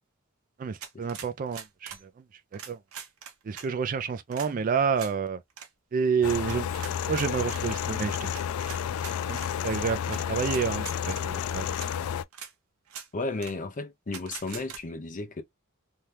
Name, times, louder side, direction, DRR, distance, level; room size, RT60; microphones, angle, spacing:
voice 1, 0.6-2.0 2.7-2.8 3.5-5.4 5.9-6.7 7.1-8.3 9.3-11.8, right 6 dB, 40° right, 0.3 m, -29 dB
sound 1, 0.8-2.0 2.5-3.7 4.3-4.5 5.0-5.1 5.5-5.7 6.5-7.6 8.3-9.5 10.1-10.2 10.5-11.2 11.8-11.9 12.3-12.5 12.9-13.1 13.4-13.5 14.1-14.8, right 7 dB, 85° right, 0.7 m, -42 dB
sound 2, 6.2-12.2, left 9 dB, 85° left, 0.3 m, -31 dB
voice 2, 13.1-15.4, left 3 dB, 40° left, 0.6 m, -34 dB
2.8 x 2.3 x 3.2 m
head